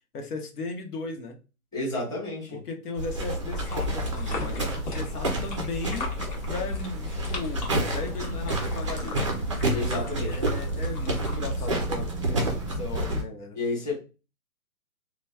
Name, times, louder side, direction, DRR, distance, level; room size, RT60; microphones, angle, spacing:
voice 1, 0.1-1.4 2.5-6.1 6.5-9.2 10.2-13.6, left 3 dB, 80° left, 1.0 m, -36 dB
voice 2, 1.7-2.6 9.7-10.4 11.7-11.8 13.5-14.0, left 2 dB, 10° left, 1.1 m, -31 dB
sound 1, 3.0-13.2, right 1 dB, 25° right, 0.4 m, -29 dB
sound 2, 3.5-11.4, left 3 dB, 25° left, 0.7 m, -41 dB
sound 3, 3.9-5.0 6.9-8.1 9.3-10.2, left 3 dB, 45° left, 1.3 m, -41 dB
2.9 x 2.2 x 2.2 m
hypercardioid pair, 140°, 44 cm